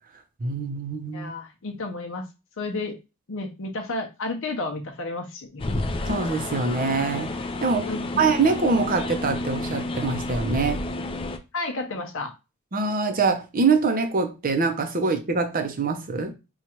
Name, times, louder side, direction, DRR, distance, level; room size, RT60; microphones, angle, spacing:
voice 1, 0.4-1.3 6.1-7.9 8.2-10.9 12.7-16.3, right 4 dB, 40° right, 0.7 m, -24 dB
voice 2, 1.1-2.2 2.6-3.0 3.3-5.7 7.9-8.3 11.5-12.3, left 2 dB, 60° left, 0.7 m, -32 dB
sound 1, 5.6-11.4, left 2 dB, 25° left, 0.4 m, -30 dB
3.0 x 2.4 x 4.3 m
head